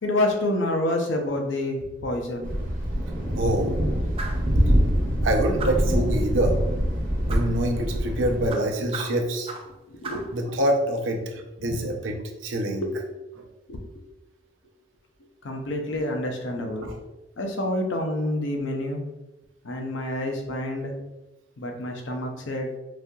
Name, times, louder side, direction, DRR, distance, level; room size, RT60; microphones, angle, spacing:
voice 1, 0.0-2.5 9.9-10.3 11.6-11.9 12.8-12.9 13.7-13.8 15.4-16.9 17.4-19.0 19.6-21.0 21.6-22.7, left 1 dB, 75° left, 2 dB, 0.6 m, -28 dB
Thunder, 2.4-8.5, equal, 45° right, 0.8 m, -24 dB
voice 2, 3.4-3.8 5.2-6.5 7.3-9.5 10.3-11.2 11.6-12.1 12.4-12.9 16.8-16.9, right 1 dB, 85° right, 2 dB, 0.6 m, -25 dB
sound 1, 4.2-4.5 5.6-6.0 7.3-7.5 8.5-9.8 10.0-10.3, right 3 dB, 30° right, 0.3 m, -36 dB
4.1 x 2.7 x 2.3 m, 0.98 s
head